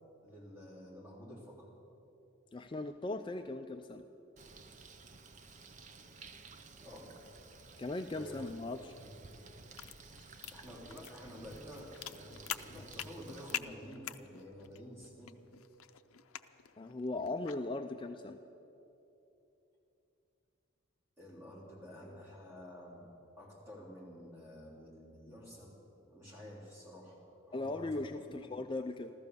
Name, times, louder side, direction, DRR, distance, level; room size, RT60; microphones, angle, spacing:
voice 1, 0.2-1.7 6.8-7.1 8.1-8.5 10.5-15.3 21.2-23.1 23.4-25.8 26.1-28.4, equal, 10° right, -6 dB, 3.3 m, -50 dB
voice 2, 2.5-4.0 7.8-9.0 16.8-18.4 27.5-29.1, left 2 dB, 20° left, 7 dB, 0.3 m, -38 dB
Bird, 4.4-13.6, right 3 dB, 35° right, 0.6 m, -54 dB
sound 1, 9.2-17.7, left 11 dB, 85° left, 0.5 m, -46 dB
14.5 x 13.0 x 6.8 m, 2.9 s
head